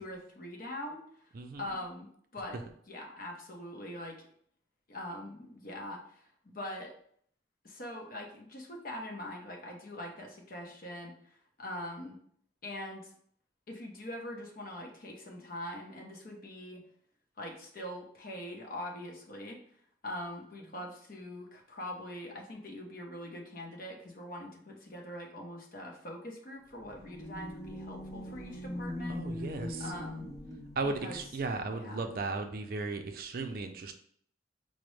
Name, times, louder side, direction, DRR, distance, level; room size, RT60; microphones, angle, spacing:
voice 1, 0.0-1.3 1.6-2.6 2.9-4.2 4.9-6.9 7.6-12.2 12.6-13.1 13.7-16.8 17.4-29.5 29.8-30.3 30.8-31.2 31.7-32.1, left 1 dB, 50° left, 1 dB, 0.8 m, -43 dB
voice 2, 1.3-1.7 29.1-29.9 30.8-33.9, right 3 dB, 50° right, 6 dB, 0.4 m, -36 dB
sound 1, 26.7-31.5, left 1 dB, 20° left, 0.5 m, -41 dB
5.0 x 2.1 x 3.1 m, 0.63 s
head